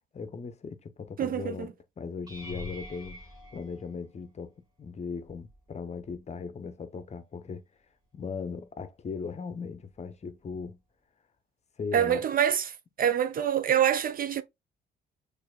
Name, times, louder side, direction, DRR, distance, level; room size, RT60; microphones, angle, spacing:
voice 1, 0.1-3.2 3.5-4.5 4.8-7.6 8.1-10.8 11.8-12.3, left 5 dB, 35° left, 0.6 m, -38 dB
voice 2, 1.2-1.7 11.9-12.7 13.0-14.4, right 9 dB, 45° right, 0.4 m, -25 dB
sound 1, 2.3-4.5 5.2-5.7 6.0-6.2 10.5-10.6, left 2 dB, 20° right, 1.6 m, -44 dB
6.3 x 2.6 x 2.3 m
cardioid pair, 90°, 20 cm